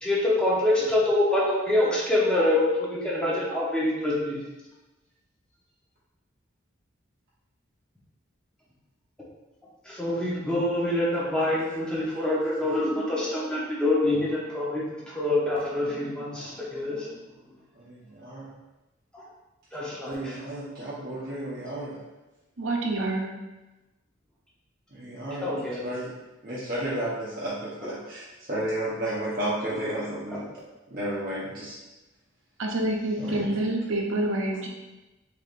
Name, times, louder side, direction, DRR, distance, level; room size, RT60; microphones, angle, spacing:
voice 1, 0.0-4.4 9.9-17.1 19.1-19.2 19.7-20.4 25.4-25.8, left 1 dB, 5° left, -7 dB, 0.9 m, -25 dB
voice 2, 17.7-18.5 20.0-22.0 24.9-26.2 26.4-30.5 30.9-31.8 33.2-33.6, right 1 dB, 50° right, -9 dB, 0.9 m, -33 dB
voice 3, 22.6-23.3 32.6-34.7, right 1 dB, 80° right, 1 dB, 0.7 m, -27 dB
4.6 x 3.4 x 2.6 m, 1.1 s
head